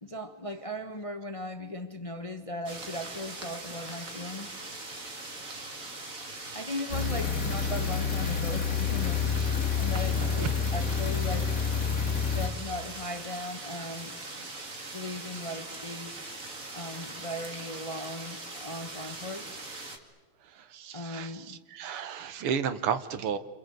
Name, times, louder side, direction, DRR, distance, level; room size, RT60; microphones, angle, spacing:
voice 1, 0.0-4.5 6.5-9.3 9.8-11.6 12.3-14.5 14.9-16.2 16.7-19.6 20.9-21.6, left 1 dB, 20° left, 7 dB, 0.9 m, -38 dB
sound 1, 2.7-20.0, right 2 dB, 40° right, 2.7 m, -41 dB
sound 2, 6.9-12.5, left 6 dB, 40° left, 2.5 m, -28 dB
voice 2, 10.2-10.5 20.7-21.3 21.7-23.4, right 7 dB, 85° right, 11 dB, 2.1 m, -32 dB
27.5 x 27.5 x 7.8 m, 1.3 s
omnidirectional pair, 2.4 m